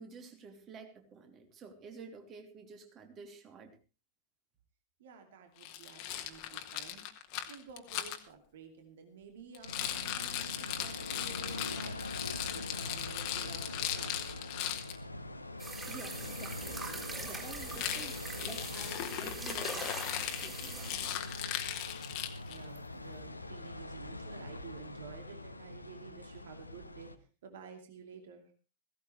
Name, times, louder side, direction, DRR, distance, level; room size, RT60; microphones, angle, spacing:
voice 1, 0.0-3.8 15.8-21.2, right 5 dB, 30° right, 5 dB, 3.1 m, -51 dB
voice 2, 5.0-14.4 17.9-18.0 22.4-27.1 27.4-28.5, right 6 dB, 60° right, 5 dB, 2.5 m, -52 dB
Rattle, 5.6-8.2 9.5-15.0 17.7-22.6, left 11 dB, 45° left, 1.6 m, -38 dB
sound 1, 9.6-27.2, left 2 dB, 85° left, 1.0 m, -44 dB
sound 2, 15.6-21.8 22.8-22.9, right 3 dB, 15° right, 4.7 m, -43 dB
16.5 x 16.5 x 3.3 m, 0.35 s
figure-of-eight pair, 90°, 0 cm